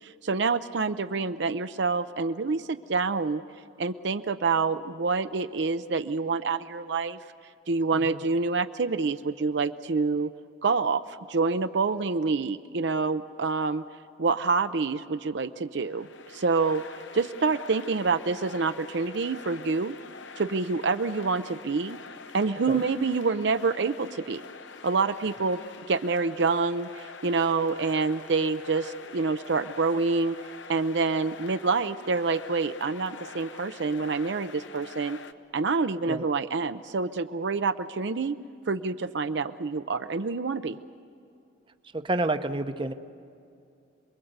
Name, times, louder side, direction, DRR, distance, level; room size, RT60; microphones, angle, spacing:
voice 1, 0.0-3.4 3.8-7.2 7.7-10.3 10.6-13.8 14.2-16.8 17.1-20.0 20.4-22.0 22.3-24.4 24.8-25.6 25.9-30.4 30.7-35.2 35.5-38.4 38.7-40.8, right 4 dB, 60° right, 10 dB, 0.6 m, -27 dB
sound 1, 15.8-35.3, left 4 dB, 70° left, 0.9 m, -45 dB
voice 2, 41.9-42.9, right 2 dB, 25° right, 9 dB, 0.7 m, -29 dB
27.5 x 21.5 x 8.0 m, 2.5 s
head